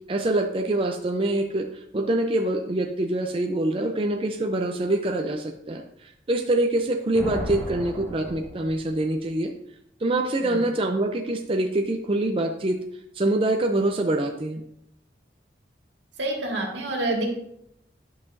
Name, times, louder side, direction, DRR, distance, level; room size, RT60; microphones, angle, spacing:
voice 1, 0.1-9.5 10.0-12.8 13.1-14.6, right 1 dB, 30° right, 3 dB, 0.5 m, -25 dB
Thunder, 7.1-9.3, equal, 15° left, 1.4 m, -35 dB
voice 2, 16.2-17.3, right 1 dB, 80° right, 0 dB, 1.8 m, -27 dB
12.0 x 5.7 x 2.6 m, 0.78 s
head